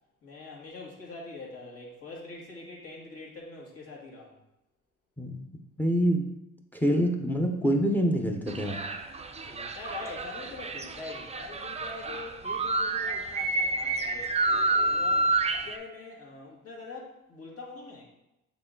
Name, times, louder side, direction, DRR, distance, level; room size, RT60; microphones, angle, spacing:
voice 1, 0.2-4.4 9.4-15.4 15.6-18.0, left 3 dB, 50° left, -4 dB, 2.2 m, -43 dB
voice 2, 5.8-6.2 6.7-8.8, equal, 5° left, 3 dB, 0.8 m, -25 dB
sound 1, 8.5-15.8, right 2 dB, 20° right, 0.5 m, -29 dB
6.8 x 3.9 x 3.9 m, 0.91 s
cardioid pair, 90°, 30 cm